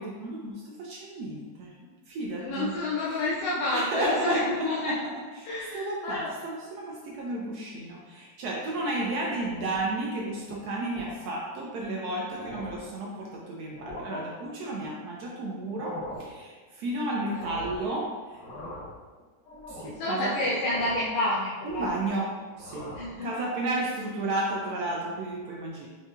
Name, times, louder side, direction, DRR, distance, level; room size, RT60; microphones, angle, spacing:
voice 1, 0.0-2.7 3.7-5.0 5.4-5.5 5.7-18.4 19.7-20.3 21.6-22.9 23.2-25.9, right 2 dB, 80° right, -2 dB, 0.8 m, -32 dB
voice 2, 2.4-5.0 5.4-6.3 17.2-17.7 19.8-22.2 22.9-23.4, left 2 dB, 85° left, -6 dB, 1.6 m, -30 dB
sound 1, 9.3-9.9 10.3-10.6 11.0-11.2 11.8-11.9 12.2-12.9 13.7-14.2 15.6-16.3 17.4-17.9 18.3-19.0 19.4-20.0 20.6-21.1 21.4-22.1 22.5-23.2, left 1 dB, 65° left, 0.9 m, -42 dB
5.6 x 2.7 x 2.4 m, 1.4 s
omnidirectional pair, 2.3 m